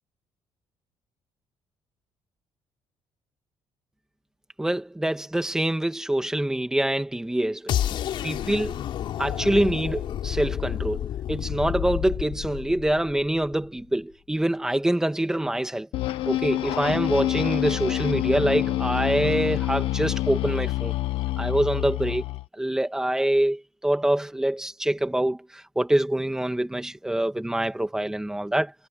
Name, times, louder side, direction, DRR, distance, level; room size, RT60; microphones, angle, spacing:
voice 1, 4.6-7.7 8.2-8.8 9.2-15.9 16.3-20.9 21.4-22.2 22.6-28.9, right 1 dB, 5° right, 1.9 m, -25 dB
sound 1, 7.7-13.7, left 11 dB, 65° left, 4.1 m, -30 dB
sound 2, 15.9-22.5, left 15 dB, 80° left, 1.2 m, -27 dB
cardioid pair, 130°, 9 cm